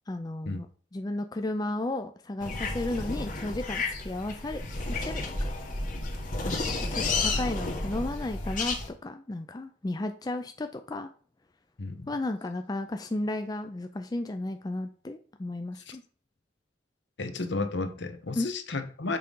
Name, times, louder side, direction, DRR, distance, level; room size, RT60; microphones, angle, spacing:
voice 1, 0.1-0.7 0.9-5.5 6.4-8.8 9.0-11.1 12.1-16.0 18.4-18.5, left 2 dB, 20° left, 0.4 m, -34 dB
sound 1, 2.4-8.9, left 3 dB, 40° left, 1.2 m, -31 dB
voice 2, 11.8-12.1 15.9-16.0 17.2-19.2, left 3 dB, 70° left, 0.9 m, -33 dB
6.7 x 3.8 x 5.3 m
head